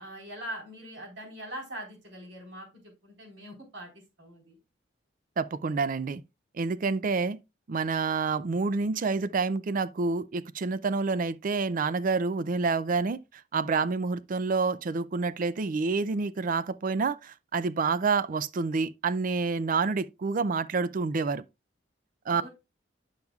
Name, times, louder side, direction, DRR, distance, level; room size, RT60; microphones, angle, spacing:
voice 1, 0.0-4.6 22.3-22.5, equal, 80° right, 4.1 m, -42 dB
voice 2, 5.4-6.2 6.5-7.4 7.7-21.4 22.3-22.4, right 4 dB, 45° right, 0.4 m, -28 dB
9.2 x 7.0 x 2.3 m
head